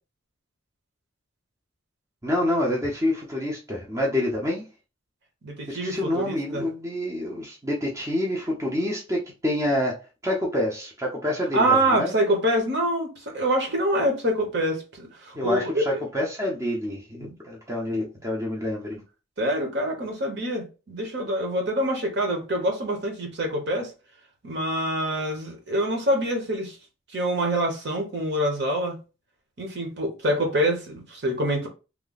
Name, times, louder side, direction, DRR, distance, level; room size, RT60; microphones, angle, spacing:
voice 1, 2.2-4.6 5.7-9.9 10.2-12.1 15.3-19.0, left 1 dB, 15° right, 0.6 m, -27 dB
voice 2, 5.4-6.6 11.5-16.0 17.1-17.3 17.9-18.1 19.4-23.9 24.4-26.8 27.1-29.0 29.6-31.7, right 1 dB, 55° right, 1.0 m, -26 dB
3.1 x 2.2 x 3.9 m
head